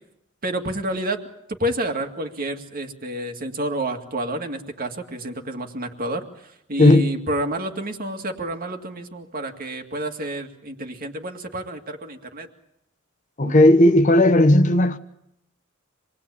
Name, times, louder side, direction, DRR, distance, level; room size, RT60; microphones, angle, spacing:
voice 1, 0.4-1.2 1.5-12.5 13.4-13.7, right 1 dB, 45° right, 2.2 m, -29 dB
voice 2, 6.8-7.1 13.4-15.0, left 1 dB, 40° left, 1.1 m, -15 dB
26.5 x 20.0 x 8.6 m
head